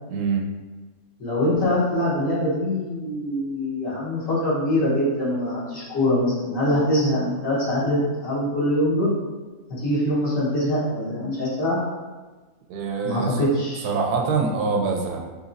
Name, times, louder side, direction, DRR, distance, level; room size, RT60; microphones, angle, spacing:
voice 1, 0.1-0.4 12.7-13.4 13.8-15.2, right 4 dB, 80° right, 1 dB, 1.1 m, -24 dB
voice 2, 1.2-9.1 9.7-11.8 13.0-13.9, left 1 dB, 60° left, -9 dB, 1.7 m, -23 dB
3.9 x 2.9 x 2.6 m, 1.3 s
omnidirectional pair, 1.6 m